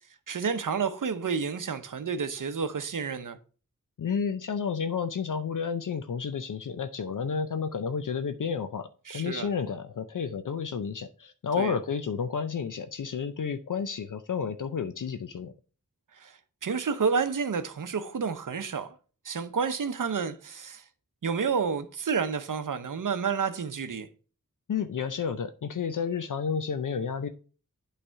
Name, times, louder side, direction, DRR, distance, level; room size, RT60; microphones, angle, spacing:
voice 1, 0.3-3.4 9.1-9.5 11.6-11.8 16.2-19.0 19.2-20.8 21.2-24.1, right 5 dB, 65° right, 0.7 m, -30 dB
voice 2, 4.0-8.9 9.1-15.5 24.7-27.3, left 6 dB, 65° left, 0.5 m, -31 dB
8.7 x 3.3 x 4.5 m
wide cardioid pair, 65°, 34 cm